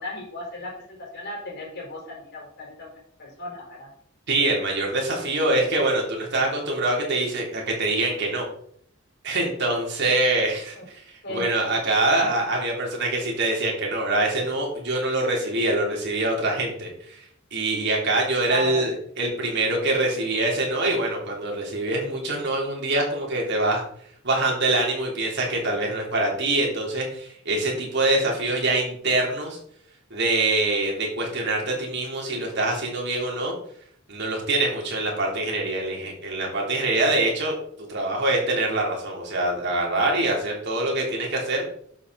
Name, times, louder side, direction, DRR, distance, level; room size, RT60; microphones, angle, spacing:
voice 1, 0.0-2.9 3.2-3.9 10.7-10.8 11.2-11.5 18.5-18.9, left 2 dB, 55° left, -2 dB, 4.7 m, -35 dB
voice 2, 4.3-8.5 9.2-17.3 17.5-23.8 24.2-29.6 30.1-33.5 34.1-41.6, right 2 dB, 60° right, -1 dB, 3.5 m, -24 dB
11.5 x 7.5 x 4.2 m, 0.64 s
head